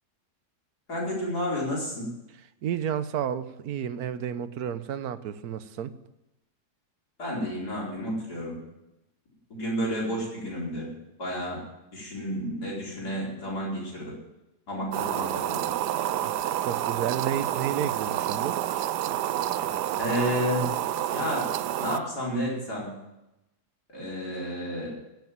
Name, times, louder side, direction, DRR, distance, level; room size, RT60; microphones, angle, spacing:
voice 1, 0.9-2.1 7.2-8.6 9.5-10.9 11.2-11.6 11.9-14.1 14.7-15.7 16.1-16.2 20.0-20.7 21.1-22.9 23.9-24.9, equal, 75° left, -4 dB, 5.1 m, -31 dB
voice 2, 2.6-5.9 16.2-16.3 16.6-18.6, right 9 dB, 70° right, 13 dB, 1.3 m, -31 dB
sound 1, 14.9-22.0, right 12 dB, 90° right, 1.2 m, -29 dB
15.5 x 7.2 x 9.3 m, 0.93 s
omnidirectional pair, 1.7 m